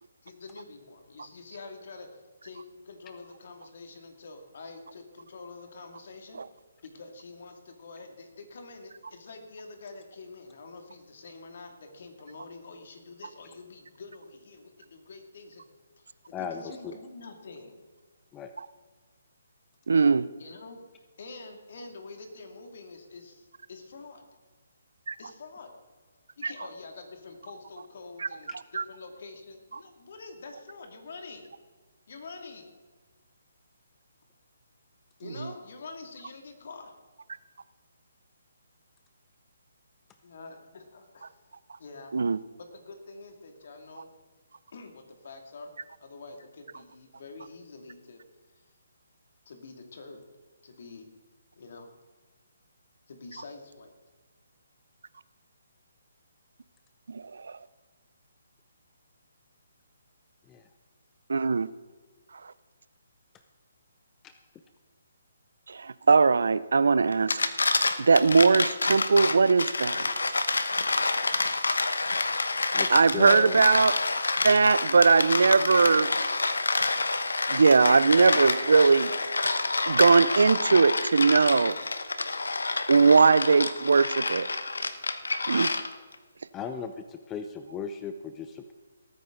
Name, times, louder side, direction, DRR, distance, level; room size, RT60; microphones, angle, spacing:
voice 1, 0.2-6.4 6.8-15.6 16.0-17.8 20.4-24.3 25.2-25.7 26.4-31.5 32.1-32.7 35.2-36.9 40.2-41.3 41.8-42.2 42.6-44.1 44.7-45.7 46.0-48.2 49.5-50.2 50.6-51.1 51.6-51.9 53.1-53.9, left 3 dB, 60° left, 4 dB, 2.4 m, -46 dB
voice 2, 16.3-17.0 18.3-18.5 60.5-60.6 64.2-64.3 72.7-73.6 86.5-88.7, left 6 dB, 15° left, 8 dB, 0.6 m, -37 dB
voice 3, 19.9-20.2 25.1-25.2 26.4-26.5 28.7-28.8 42.1-42.4 57.1-57.6 61.3-61.7 65.7-67.4 68.0-70.1 72.9-74.0 74.4-76.1 77.5-79.1 79.9-81.8 82.9-84.5 85.5-85.7, right 4 dB, 75° right, 17 dB, 0.5 m, -20 dB
sound 1, 67.1-86.1, left 3 dB, 85° left, 1.0 m, -28 dB
19.0 x 9.2 x 3.9 m, 1.4 s
hypercardioid pair, 150°, 0 cm